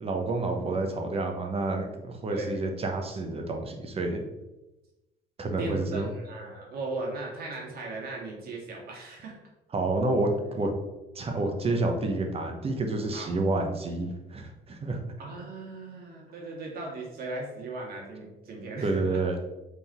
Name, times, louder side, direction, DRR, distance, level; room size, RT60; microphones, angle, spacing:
voice 1, 0.0-4.2 5.4-6.1 9.7-10.7 11.1-15.0 18.8-19.4, right 2 dB, 35° right, 3 dB, 1.1 m, -29 dB
voice 2, 2.3-2.6 5.6-9.4 13.1-13.3 15.2-19.2, right 2 dB, 65° right, -1 dB, 2.1 m, -37 dB
5.9 x 3.9 x 4.4 m, 1.0 s
cardioid pair, 110°, 17 cm